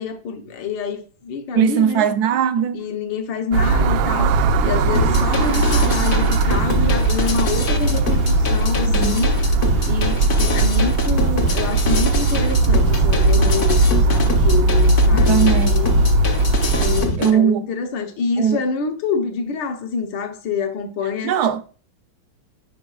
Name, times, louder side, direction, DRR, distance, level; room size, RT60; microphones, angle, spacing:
voice 1, 0.0-2.1 2.7-9.3 9.9-15.9 16.8-21.3, left 5 dB, 70° left, 1.6 m, -26 dB
voice 2, 1.5-2.8 8.9-9.2 15.1-15.9 17.2-17.6 18.4-18.6 21.2-21.6, right 8 dB, 65° right, 1.0 m, -19 dB
sound 1, 3.5-17.1, right 2 dB, 85° right, 1.4 m, -18 dB
sound 2, 4.9-17.3, left 4 dB, 55° left, 0.6 m, -26 dB
9.4 x 5.4 x 2.3 m
omnidirectional pair, 2.1 m